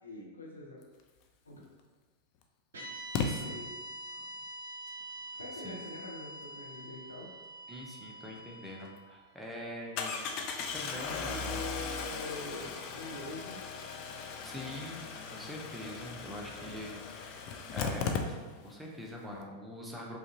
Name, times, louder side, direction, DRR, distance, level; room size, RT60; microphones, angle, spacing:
voice 1, 0.0-0.8 1.4-1.6 3.2-3.7 5.4-7.3 11.3-13.6 16.4-16.8, left 2 dB, 80° left, -2 dB, 0.7 m, -44 dB
Engine starting, 1.6-1.7 3.1-3.3 8.4-8.5 8.8-8.9 10.0-18.8 19.1-19.2 19.4-19.5, left 5 dB, 40° left, 0.4 m, -37 dB
sound 1, 2.7-11.0, right 1 dB, 65° right, 0.8 m, -46 dB
voice 2, 7.7-10.3 10.7-11.6 14.4-15.1 15.3-20.2, equal, 5° right, -2 dB, 0.7 m, -44 dB
4.9 x 2.5 x 3.0 m, 1.3 s
figure-of-eight pair, 90°, 0 cm